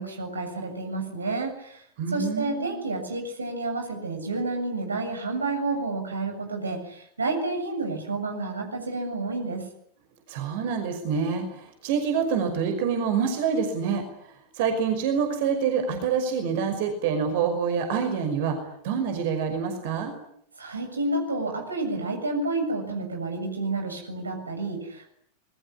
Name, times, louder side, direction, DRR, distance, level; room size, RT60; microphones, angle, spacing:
voice 1, 0.0-1.8 2.1-9.6 20.6-25.1, right 2 dB, 75° right, 5 dB, 7.3 m, -30 dB
voice 2, 2.0-2.8 10.3-18.6 18.8-20.1, right 6 dB, 50° right, 6 dB, 5.6 m, -26 dB
27.0 x 22.0 x 9.9 m, 0.69 s
figure-of-eight pair, 90°, 0 cm